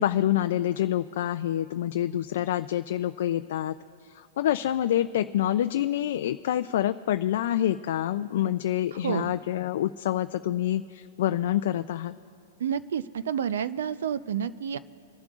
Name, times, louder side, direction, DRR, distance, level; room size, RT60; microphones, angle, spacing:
voice 1, 0.0-3.7 4.1-12.1, left 12 dB, 55° left, 9 dB, 0.3 m, -27 dB
voice 2, 9.0-9.3 12.6-14.8, right 8 dB, 80° right, 15 dB, 0.6 m, -29 dB
27.0 x 11.5 x 2.5 m, 2.5 s
supercardioid pair, 170°, 0 cm